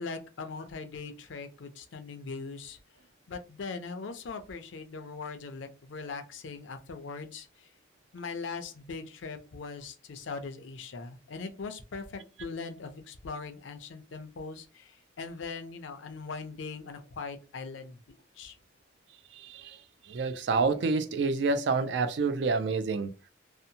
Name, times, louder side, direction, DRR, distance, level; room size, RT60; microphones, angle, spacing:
voice 1, 0.0-2.8 3.3-7.5 8.1-14.9 15.2-18.0 18.4-18.5, left 4 dB, 75° left, 0.5 m, -40 dB
voice 2, 20.1-23.1, right 4 dB, 65° right, 0.3 m, -28 dB
2.7 x 2.0 x 2.7 m
head